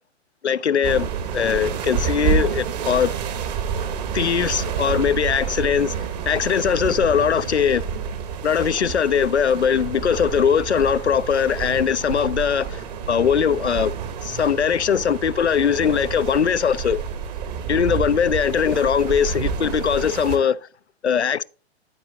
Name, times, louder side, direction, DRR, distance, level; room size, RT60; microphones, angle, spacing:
voice 1, 0.4-3.2 4.1-5.9 6.3-7.8 8.4-13.9 14.2-17.0 17.7-20.6 21.0-21.4, left 7 dB, 85° left, 0.5 m, -20 dB
sound 1, 0.8-20.4, right 7 dB, 40° right, 1.2 m, -29 dB
12.5 x 4.8 x 3.9 m
figure-of-eight pair, 115°, 33 cm